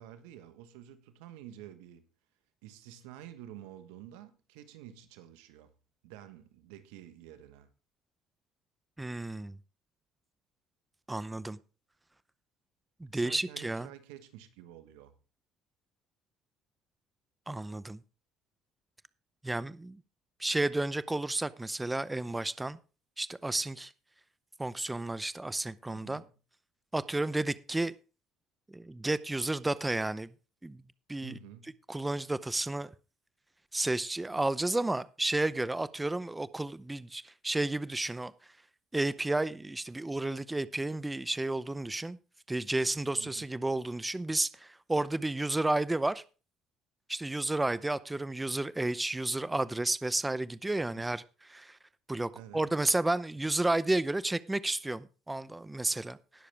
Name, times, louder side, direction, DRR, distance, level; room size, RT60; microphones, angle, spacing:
voice 1, 0.0-2.1 2.6-5.7 6.0-7.7 13.1-15.2 25.9-26.3 31.2-31.7 43.1-43.5 52.3-52.7, right 11 dB, 90° right, 1.3 m, -50 dB
voice 2, 9.0-9.6 11.1-11.6 13.0-13.9 17.5-18.0 19.4-20.0 20.4-22.8 23.2-23.9 24.6-26.2 26.9-27.9 28.7-30.3 30.6-30.8 31.1-31.4 31.9-32.9 33.7-38.3 38.9-42.2 42.5-46.2 47.1-51.2 51.5-51.8 52.1-56.2, right 2 dB, 10° right, 0.6 m, -32 dB
19.0 x 6.8 x 3.4 m
supercardioid pair, 85°, 0 cm